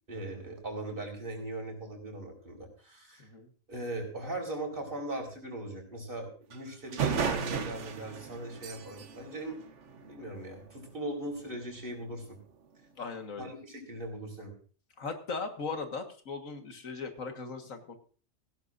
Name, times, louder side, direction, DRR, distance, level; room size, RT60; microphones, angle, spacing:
voice 1, 0.1-3.3 3.7-9.6 9.9-12.4 13.4-14.5, right 1 dB, 40° right, 2 dB, 4.4 m, -39 dB
sound 1, 6.5-6.6 6.9-10.4, right 6 dB, 65° right, 1.3 m, -34 dB
voice 2, 13.0-13.5 15.0-18.0, left 4 dB, 75° left, 6 dB, 2.0 m, -38 dB
17.0 x 16.5 x 2.6 m, 0.41 s
omnidirectional pair, 1.4 m